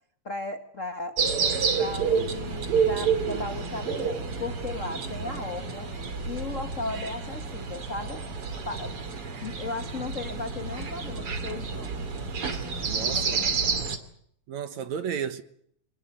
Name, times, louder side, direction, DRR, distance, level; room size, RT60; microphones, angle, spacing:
voice 1, 0.2-1.2 1.7-5.9 6.2-8.2 8.6-8.9 9.4-12.0 13.0-13.9, left 3 dB, 65° left, 0.7 m, -36 dB
sound 1, 1.2-14.0, right 5 dB, 40° right, 3.1 m, -29 dB
voice 2, 12.9-13.4 14.5-15.4, right 7 dB, 60° right, 2.3 m, -33 dB
27.5 x 20.5 x 7.9 m
omnidirectional pair, 4.2 m